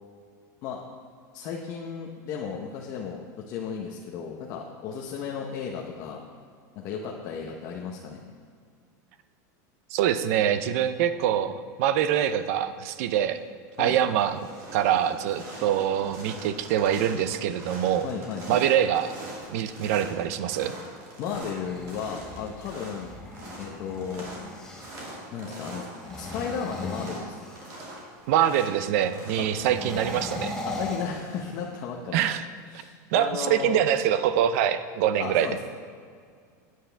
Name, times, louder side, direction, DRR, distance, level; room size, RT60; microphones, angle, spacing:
voice 1, 1.3-3.2 3.5-6.2 6.8-8.2 13.8-14.0 18.0-18.6 21.2-23.1 23.6-24.3 25.3-25.9 26.1-27.3 29.4-29.5 30.7-32.2 32.7-33.8 35.2-35.6, left 6 dB, 35° left, -1 dB, 1.0 m, -34 dB
voice 2, 9.9-13.4 13.8-18.1 18.5-19.1 19.5-20.7 28.3-30.6 32.1-32.5 33.1-35.5, right 10 dB, 50° right, 12 dB, 0.6 m, -24 dB
sound 1, 13.0-13.4 13.7-31.6, right 1 dB, 35° right, 2.7 m, -43 dB
sound 2, 21.6-25.2 25.9-28.0 29.5-31.8, left 2 dB, 5° left, 1.1 m, -38 dB
16.0 x 9.4 x 3.4 m, 2.1 s
supercardioid pair, 170°, 10 cm